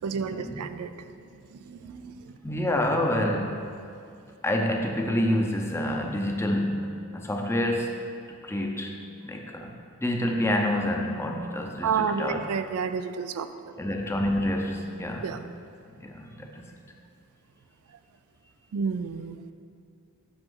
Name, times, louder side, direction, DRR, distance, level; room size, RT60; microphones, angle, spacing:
voice 1, 0.0-2.4 11.8-13.5 15.2-15.4 17.9-18.0 18.7-19.4, right 6 dB, 85° right, 10 dB, 0.4 m, -31 dB
voice 2, 2.4-3.7 4.4-7.9 8.4-9.0 9.2-9.7 10.0-12.4 13.8-15.2 16.0-16.8, left 1 dB, 10° left, 2 dB, 0.6 m, -27 dB
7.8 x 6.2 x 3.8 m, 2.5 s
head